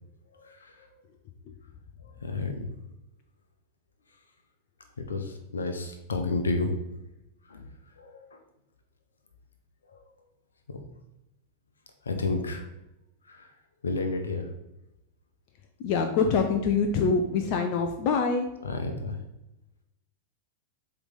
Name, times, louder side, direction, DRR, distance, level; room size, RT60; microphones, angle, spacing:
voice 1, 0.3-0.9 2.0-2.7 5.0-6.7 7.5-7.7 8.0-8.4 9.9-10.0 10.7-10.8 12.0-12.7 13.3-13.5 13.8-14.5 18.6-19.2, left 3 dB, 70° left, 5 dB, 0.9 m, -31 dB
voice 2, 15.8-18.5, left 5 dB, 45° left, 5 dB, 0.5 m, -25 dB
7.7 x 3.3 x 4.1 m, 0.91 s
figure-of-eight pair, 90°, 0 cm